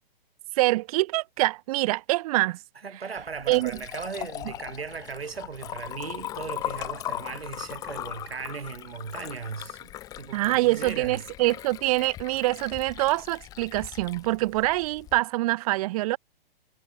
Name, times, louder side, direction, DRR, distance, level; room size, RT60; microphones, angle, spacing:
voice 1, 0.6-2.6 3.5-3.7 10.3-16.2, right 19 dB, 35° right, 1.0 m, -25 dB
voice 2, 2.8-11.2, right 5 dB, 80° right, 6.1 m, -37 dB
Liquid, 3.2-15.2, left 13 dB, 10° left, 0.5 m, -39 dB
figure-of-eight pair, 125°, 30 cm